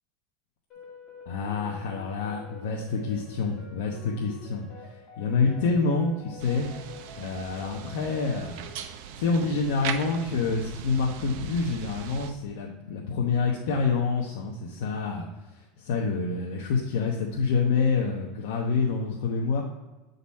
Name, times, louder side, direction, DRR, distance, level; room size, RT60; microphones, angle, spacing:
sound 1, 0.7-8.7, left 3 dB, 40° left, 2.3 m, -47 dB
voice 1, 1.3-6.7 7.2-8.6 9.2-15.3 15.8-19.6, left 4 dB, 80° left, -1 dB, 1.0 m, -27 dB
sound 2, 6.4-12.3, right 8 dB, 65° right, 0.7 m, -39 dB
8.4 x 4.1 x 4.2 m, 1.1 s
supercardioid pair, 140°, 0 cm